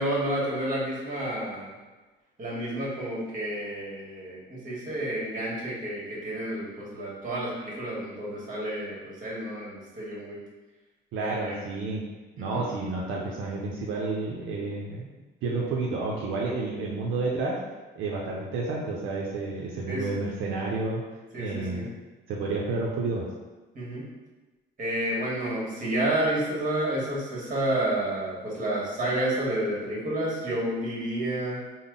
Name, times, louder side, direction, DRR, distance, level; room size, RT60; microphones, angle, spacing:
voice 1, 0.0-1.7 2.4-10.4 11.2-11.5 12.4-12.6 15.6-15.7 19.9-20.0 21.3-21.9 23.7-24.1 24.8-31.6, right 1 dB, 40° right, -5 dB, 1.4 m, -30 dB
voice 2, 11.1-12.0 12.4-15.1 15.4-17.6 18.0-21.0 21.4-21.9 22.3-23.3, right 3 dB, 85° right, -3 dB, 0.5 m, -30 dB
3.8 x 2.0 x 3.6 m, 1.2 s
cardioid pair, 90°, 20 cm